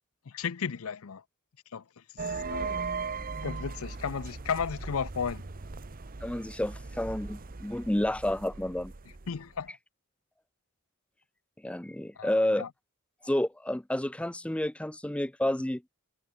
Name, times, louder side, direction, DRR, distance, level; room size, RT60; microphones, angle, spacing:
voice 1, 0.3-1.2 1.7-1.8 2.5-2.8 3.4-5.4 9.3-9.8 12.2-12.7, left 6 dB, 65° left, 0.6 m, -34 dB
sound 1, 2.2-9.6, right 4 dB, 40° right, 0.9 m, -38 dB
voice 2, 6.2-8.9 11.6-12.7 13.2-15.8, left 1 dB, 5° left, 0.5 m, -30 dB
head